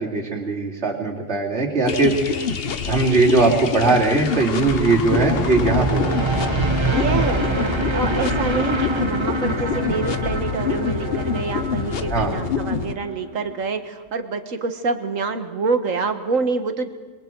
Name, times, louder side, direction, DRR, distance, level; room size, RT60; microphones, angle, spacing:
voice 1, 0.0-2.1 2.8-6.3 12.1-12.3, right 3 dB, 50° right, -7 dB, 3.4 m, -20 dB
sound 1, 1.9-12.9, left 6 dB, 50° left, 1.0 m, -26 dB
sound 2, 4.4-13.5, right 2 dB, 20° right, 1.0 m, -26 dB
voice 2, 6.9-16.9, right 4 dB, 65° right, 8 dB, 1.8 m, -26 dB
27.5 x 22.5 x 4.6 m, 1.4 s
omnidirectional pair, 1.5 m